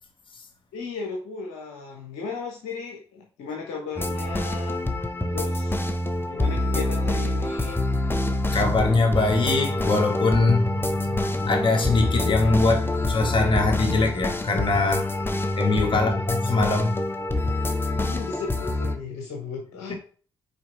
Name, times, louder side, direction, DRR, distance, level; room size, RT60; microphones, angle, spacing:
voice 1, 0.7-4.8 5.3-5.9 6.3-7.8 15.9-16.2 18.0-19.9, left 5 dB, 75° left, 1.1 m, -35 dB
sound 1, 4.0-19.0, left 2 dB, 20° left, 1.1 m, -26 dB
voice 2, 8.5-15.1 15.6-17.0 19.9-20.0, left 3 dB, 45° left, 2.2 m, -23 dB
5.7 x 4.7 x 4.5 m
hypercardioid pair, 40°, 12 cm